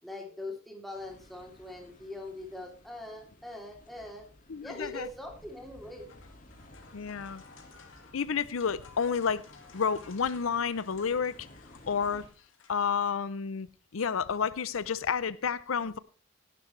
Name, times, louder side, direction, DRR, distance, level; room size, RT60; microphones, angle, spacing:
voice 1, 0.0-4.3 4.6-6.1, left 2 dB, ahead, 3.1 m, -42 dB
sound 1, 0.9-12.3, left 1 dB, 40° left, 2.2 m, -55 dB
voice 2, 4.5-5.1 6.9-7.4 8.1-9.4 9.7-11.5 11.9-12.3 12.7-13.7 13.9-16.0, left 6 dB, 85° left, 0.6 m, -30 dB
sound 2, 5.7-13.3, left 5 dB, 70° left, 2.2 m, -56 dB
17.5 x 11.0 x 3.3 m
head